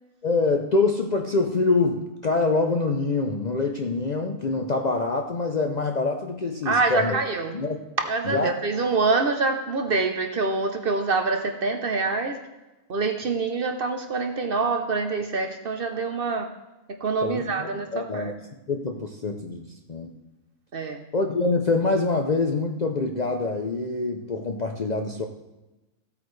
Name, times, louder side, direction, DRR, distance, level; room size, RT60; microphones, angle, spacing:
voice 1, 0.2-7.2 7.5-7.8 8.2-8.5 17.2-18.3 18.7-20.2 21.1-25.3, left 3 dB, 45° left, 2 dB, 0.6 m, -25 dB
voice 2, 6.6-7.6 8.0-12.4 12.9-16.5 17.0-18.3 20.7-21.0, right 4 dB, 50° right, 5 dB, 0.8 m, -25 dB
16.0 x 8.6 x 3.2 m, 1.1 s
omnidirectional pair, 1.4 m